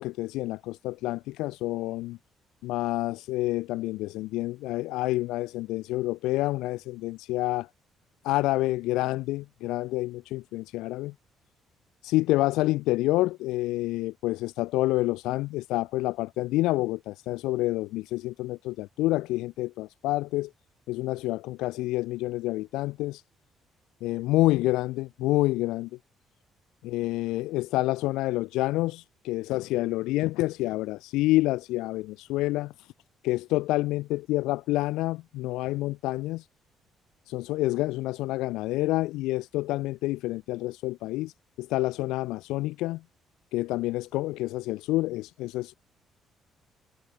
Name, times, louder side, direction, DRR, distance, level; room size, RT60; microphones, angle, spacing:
voice 1, 0.0-2.2 2.6-7.7 8.2-11.1 12.0-20.5 20.9-23.2 24.0-25.9 26.8-32.9 33.2-36.5 37.3-41.3 41.6-43.0 43.5-45.7, left 18 dB, 90° left, 0.5 m, -28 dB
cardioid pair, 90°, 0 cm